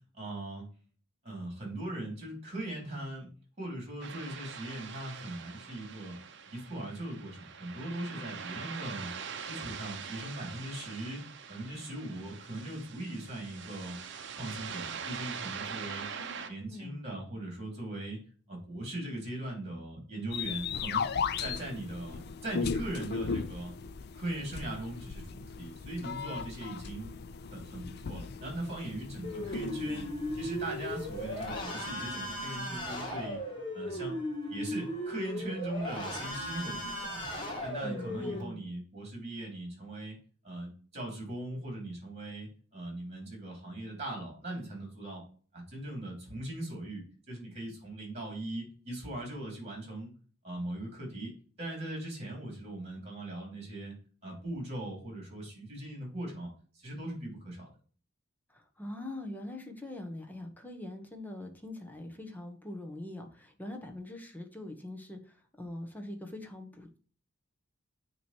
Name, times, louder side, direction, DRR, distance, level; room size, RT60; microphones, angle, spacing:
voice 1, 0.1-0.7 1.2-3.3 3.6-6.2 6.5-9.1 9.5-14.0 14.4-16.1 16.4-18.2 18.5-21.1 21.4-23.7 24.1-27.1 27.5-33.4 33.7-34.2 34.5-37.2 37.6-40.2 40.4-45.2 45.5-50.1 50.4-51.3 51.6-53.9 54.2-57.7, right 1 dB, 30° right, 0 dB, 3.6 m, -40 dB
sound 1, 4.0-16.5, right 6 dB, 60° right, 0.8 m, -43 dB
voice 2, 16.1-17.0 29.4-30.1 37.8-38.6 58.5-67.0, left 1 dB, 10° left, 4 dB, 1.1 m, -43 dB
sound 2, 20.3-31.6, left 5 dB, 50° left, 0.4 m, -37 dB
sound 3, 29.2-38.4, equal, 25° left, 1.7 m, -37 dB
9.1 x 3.1 x 4.5 m, 0.42 s
head